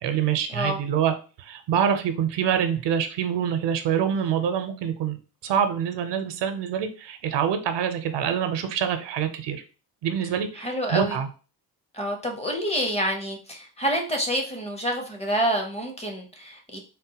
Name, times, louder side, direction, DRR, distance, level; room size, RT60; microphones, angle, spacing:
voice 1, 0.0-1.1 1.4-5.2 5.4-9.6 10.0-11.3, right 8 dB, 85° right, 8 dB, 0.6 m, -25 dB
voice 2, 10.6-11.2 11.9-16.8, equal, 15° left, 2 dB, 0.6 m, -27 dB
3.7 x 2.1 x 2.8 m, 0.35 s
wide cardioid pair, 150°, 41 cm